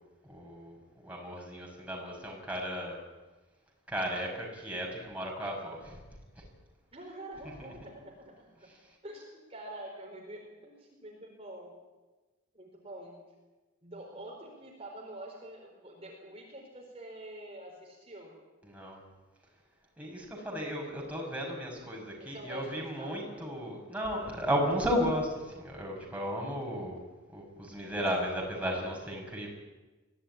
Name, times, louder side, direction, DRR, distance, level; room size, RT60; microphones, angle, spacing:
voice 1, 0.2-0.8 1.0-3.0 3.9-6.0 18.7-19.0 20.0-27.0 27.3-29.5, equal, 5° right, -1 dB, 6.0 m, -34 dB
voice 2, 6.9-8.7 9.0-11.8 12.5-13.2 13.8-18.3 22.2-23.4 27.7-28.2, right 1 dB, 30° right, -1 dB, 4.7 m, -46 dB
23.5 x 16.5 x 10.0 m, 1.2 s
head